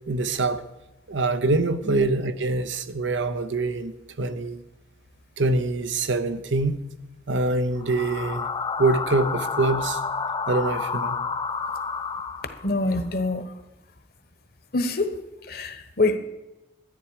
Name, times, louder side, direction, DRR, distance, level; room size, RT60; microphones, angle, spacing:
voice 1, 0.1-0.7 1.1-4.6 5.4-6.8 7.3-8.5 8.8-10.0 10.5-11.2, right 2 dB, 80° right, 0.7 m, -24 dB
sound 1, 7.8-12.9, left 5 dB, 25° left, 0.4 m, -30 dB
voice 2, 12.6-13.4 14.7-16.2, left 2 dB, 55° left, 1.1 m, -25 dB
13.0 x 9.9 x 4.8 m
head